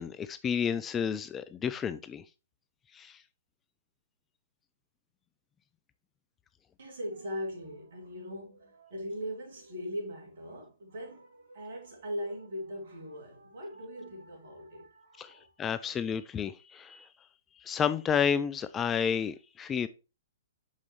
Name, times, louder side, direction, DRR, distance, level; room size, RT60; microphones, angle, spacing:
voice 1, 0.0-2.2 2.9-3.2 15.2-15.3 15.6-17.1 17.6-19.9, left 7 dB, 20° left, 0.4 m, -31 dB
voice 2, 6.8-15.9, equal, 60° right, 2.6 m, -40 dB
6.2 x 5.6 x 3.0 m
figure-of-eight pair, 120°, 0 cm